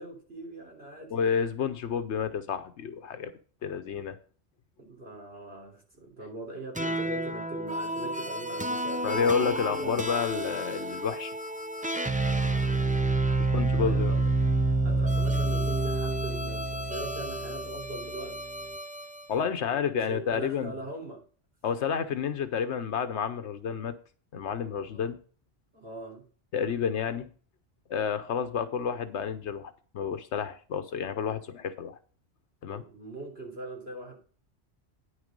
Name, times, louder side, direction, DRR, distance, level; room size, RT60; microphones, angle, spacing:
voice 1, 0.0-1.1 4.8-9.3 9.7-10.0 12.1-13.1 13.4-14.2 14.8-18.4 19.3-21.2 24.9-25.0 25.7-26.2 32.7-34.1, right 2 dB, 60° right, -1 dB, 3.6 m, -41 dB
voice 2, 1.1-3.3 3.6-4.2 9.0-11.3 13.5-14.1 19.3-20.7 21.6-23.9 24.3-25.2 26.5-27.3 27.9-32.0 32.6-32.8, left 7 dB, 80° left, 10 dB, 1.1 m, -30 dB
sound 1, 6.8-19.3, right 2 dB, 10° right, 0.4 m, -29 dB
9.8 x 6.5 x 5.2 m, 0.40 s
omnidirectional pair, 1.1 m